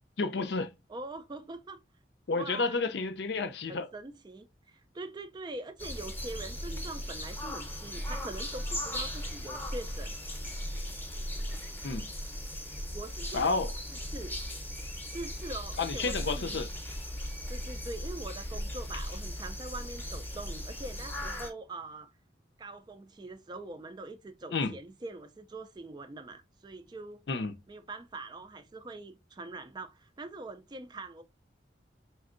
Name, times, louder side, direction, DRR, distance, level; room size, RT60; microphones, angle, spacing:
voice 1, 0.2-0.7 2.3-3.9 11.8-12.1 13.3-13.7 15.8-16.7 24.5-24.8 27.3-27.6, left 3 dB, 65° left, 0.5 m, -30 dB
voice 2, 0.9-1.8 2.3-2.8 3.7-10.2 12.9-13.7 14.1-14.4 15.1-16.6 17.5-22.1 22.6-27.2 27.7-31.2, right 2 dB, 25° right, 0.3 m, -43 dB
sound 1, 5.8-21.5, equal, 10° left, 0.8 m, -37 dB
4.3 x 3.5 x 2.5 m
head